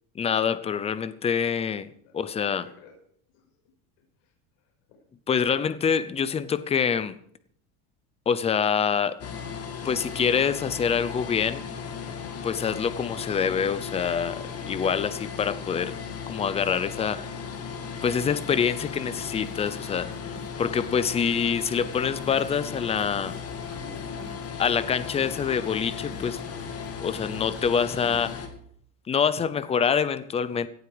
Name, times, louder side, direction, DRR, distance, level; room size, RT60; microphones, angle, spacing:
voice 1, 0.2-2.6 5.3-7.1 8.3-9.2 9.8-11.7 12.4-15.9 16.3-17.3 18.0-20.1 20.6-23.3 24.6-26.4 27.0-28.3 29.1-30.7, left 7 dB, 15° left, 0.5 m, -26 dB
voice 2, 2.0-3.0 3.3-3.6 4.2-5.0 23.6-24.1, left 5 dB, 75° left, 5.7 m, -51 dB
sound 1, 9.2-28.5, left 6 dB, 30° left, 2.2 m, -36 dB
sound 2, 16.5-16.7 17.0-17.2 17.5-28.5, right 5 dB, 30° right, 2.6 m, -51 dB
17.5 x 12.0 x 4.9 m
cardioid pair, 155°, 47 cm